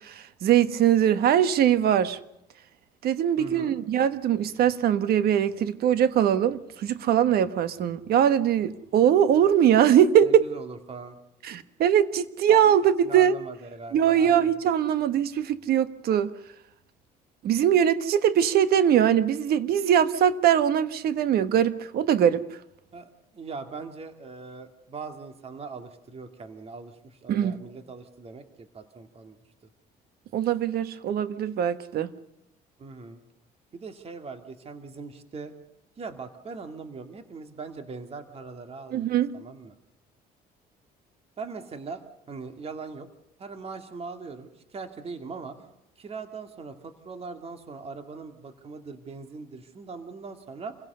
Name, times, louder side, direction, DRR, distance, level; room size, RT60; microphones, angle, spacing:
voice 1, 0.0-2.2 3.0-10.4 11.4-13.3 13.9-16.3 17.4-22.4 27.3-27.6 30.3-32.1 38.9-39.3, right 9 dB, 65° right, 1.3 m, -22 dB
voice 2, 3.4-3.7 10.2-11.2 12.5-12.7 13.0-14.6 22.9-29.4 32.8-33.2 33.7-35.5 36.0-39.8 41.4-43.1 43.4-45.7 46.0-50.8, right 4 dB, 35° right, 2.3 m, -40 dB
27.5 x 17.0 x 6.8 m
cardioid pair, 110°, 17 cm